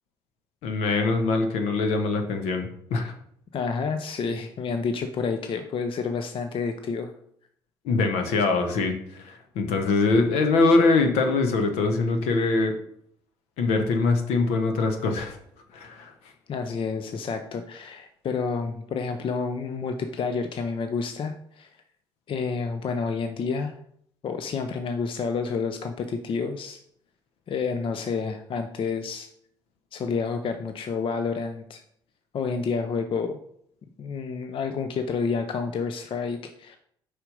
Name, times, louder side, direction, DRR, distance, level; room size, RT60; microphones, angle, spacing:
voice 1, 0.6-3.1 7.8-12.7 13.6-15.4 15.7-16.1, left 3 dB, 75° left, 6 dB, 1.0 m, -23 dB
voice 2, 3.5-7.1 16.5-21.7 22.3-23.8 24.2-26.8 27.5-29.3 29.9-31.8 32.3-33.4 34.0-36.8, left 5 dB, 50° left, 7 dB, 0.6 m, -29 dB
5.0 x 4.4 x 5.3 m, 0.68 s
hypercardioid pair, 55°, 11 cm